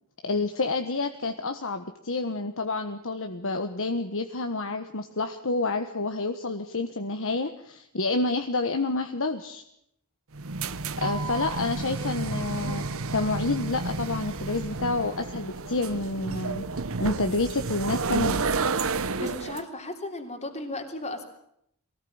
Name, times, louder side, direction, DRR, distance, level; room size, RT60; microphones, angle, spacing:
voice 1, 0.2-9.6 11.0-16.6 17.0-18.4, left 3 dB, 65° left, 7 dB, 1.4 m, -29 dB
sound 1, 10.3-19.6, right 3 dB, 65° right, 1.1 m, -31 dB
voice 2, 19.2-21.2, left 2 dB, 30° left, 5 dB, 3.2 m, -35 dB
23.5 x 18.5 x 8.8 m, 0.74 s
head